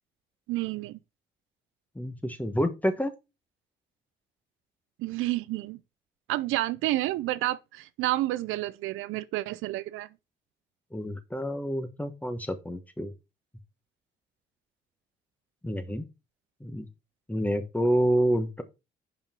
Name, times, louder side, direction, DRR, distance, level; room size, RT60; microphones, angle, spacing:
voice 1, 0.5-1.0 5.0-5.8 6.3-10.1, right 16 dB, 90° right, 0.4 m, -30 dB
voice 2, 1.9-3.1 10.9-13.1 15.6-16.0 16.6-16.9 17.3-18.6, equal, 10° left, 1.1 m, -28 dB
5.5 x 5.3 x 4.4 m
cardioid pair, 90°, 20 cm